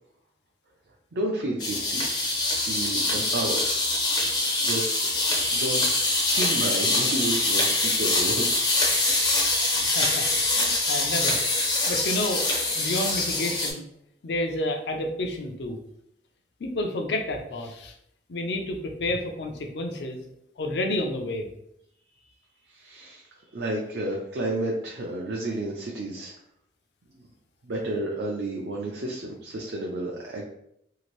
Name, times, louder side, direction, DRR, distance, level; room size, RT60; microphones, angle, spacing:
voice 1, 1.1-2.1 2.6-3.6 4.2-5.1 5.5-8.5 22.7-23.2 23.5-26.3 27.1-27.3 27.6-30.5, right 1 dB, 70° right, -2 dB, 0.4 m, -31 dB
sound 1, 1.6-13.7, left 2 dB, 25° left, 0.4 m, -24 dB
voice 2, 9.8-10.3 10.5-11.4 11.9-13.8 14.2-15.8 16.6-17.9 18.3-20.2 20.6-21.5, left 1 dB, 75° left, 4 dB, 0.5 m, -30 dB
2.8 x 2.5 x 3.1 m, 0.75 s
head